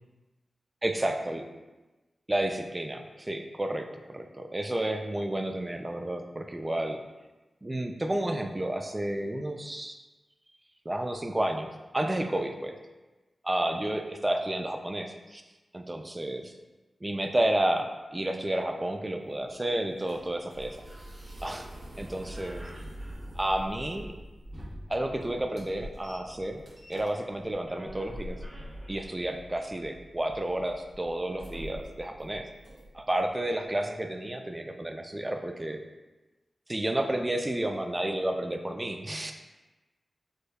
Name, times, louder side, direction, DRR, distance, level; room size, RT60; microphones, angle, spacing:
voice 1, 0.8-1.4 2.3-7.0 7.6-9.9 10.9-12.8 13.4-15.4 15.7-16.5 17.0-20.8 21.4-21.7 22.0-22.6 23.3-24.1 24.9-26.6 26.9-28.4 28.9-32.5 32.9-35.8 36.7-39.3, right 1 dB, 25° right, 5 dB, 0.3 m, -31 dB
sound 1, 19.2-33.2, equal, 55° right, 0.9 m, -45 dB
4.9 x 2.2 x 2.2 m, 1.1 s
cardioid pair, 55°, 0 cm